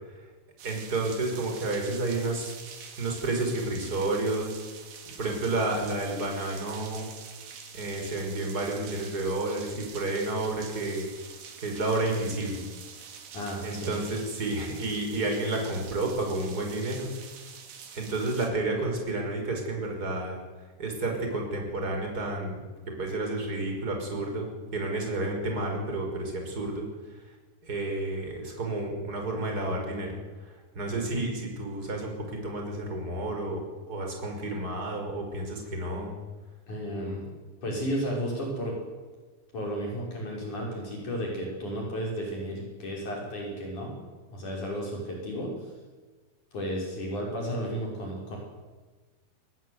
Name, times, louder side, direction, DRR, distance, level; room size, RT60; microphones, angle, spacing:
voice 1, 0.6-2.5 3.0-4.6 5.2-7.1 7.7-11.1 11.6-12.6 13.6-17.1 17.9-20.4 20.8-22.6 23.0-24.5 24.7-26.9 27.6-30.1 30.8-33.6 33.9-36.1, right 2 dB, 20° right, 2 dB, 5.7 m, -30 dB
sound 1, 0.6-18.5, right 6 dB, 85° right, 4.9 m, -46 dB
voice 2, 13.3-13.9 36.7-37.3 37.6-38.8 39.5-44.0 44.3-45.7 46.5-48.4, equal, 45° left, -1 dB, 7.2 m, -33 dB
21.5 x 20.0 x 9.7 m, 1.3 s
omnidirectional pair, 4.8 m